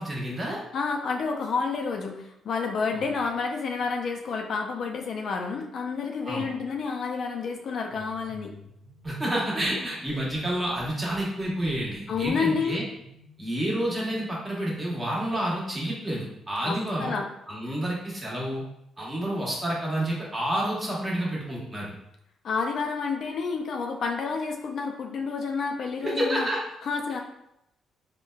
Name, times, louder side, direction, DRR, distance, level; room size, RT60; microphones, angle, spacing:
voice 1, 0.0-0.6 2.9-3.0 6.2-6.4 9.0-12.8 13.4-17.2 17.5-18.6 19.0-21.9 26.0-26.6, right 1 dB, 20° right, -5 dB, 1.1 m, -29 dB
voice 2, 0.7-8.5 12.1-12.8 16.6-17.3 22.4-26.5 26.9-27.2, left 5 dB, 60° left, 2 dB, 0.4 m, -29 dB
sound 1, 7.9-15.5, left 2 dB, ahead, 1.3 m, -52 dB
3.8 x 2.1 x 2.3 m, 0.80 s
cardioid pair, 90°, 0 cm